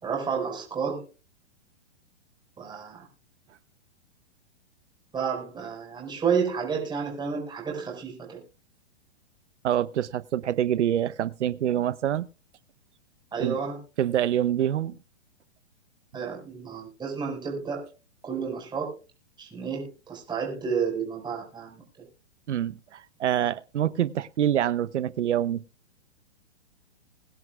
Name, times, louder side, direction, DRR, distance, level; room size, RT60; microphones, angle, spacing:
voice 1, 0.0-1.1 2.6-3.1 5.1-8.4 13.3-13.8 16.1-17.9 18.2-19.0 19.4-22.1, right 6 dB, 10° right, 5.0 m, -31 dB
voice 2, 9.6-12.2 13.4-13.6 14.0-15.0 22.5-25.6, right 10 dB, 85° right, 0.9 m, -26 dB
22.0 x 11.0 x 2.3 m
hypercardioid pair, 145°, 34 cm